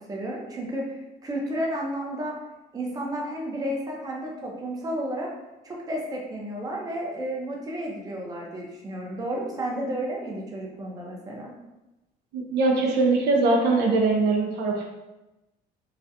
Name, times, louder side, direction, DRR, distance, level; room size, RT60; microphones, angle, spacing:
voice 1, 0.1-2.4 2.7-5.3 5.6-11.5, right 1 dB, 20° right, -2 dB, 0.6 m, -32 dB
voice 2, 12.3-14.9, right 3 dB, 80° right, 0 dB, 0.5 m, -22 dB
2.4 x 2.1 x 2.7 m, 0.99 s
cardioid pair, 110°, 17 cm